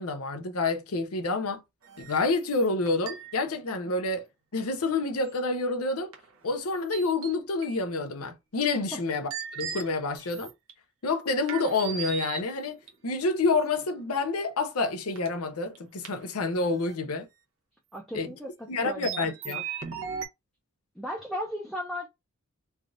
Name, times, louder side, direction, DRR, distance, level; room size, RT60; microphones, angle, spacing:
voice 1, 0.0-1.6 2.0-4.2 4.5-6.1 6.4-10.5 11.0-12.8 13.0-17.3 18.1-18.3 18.7-19.6, left 3 dB, 85° left, 0.7 m, -28 dB
sound 1, 1.8-3.5 5.2-5.7 6.1-6.6 6.9-7.8 8.6-8.7 9.3-10.7 11.5-12.9 13.8-14.1 15.2-15.3 15.7-15.8 16.0-16.2 16.8-16.9 19.0-20.3, right 7 dB, 65° right, 0.8 m, -38 dB
voice 2, 17.9-19.3 21.0-22.1, equal, ahead, 0.5 m, -36 dB
3.4 x 2.4 x 2.5 m
head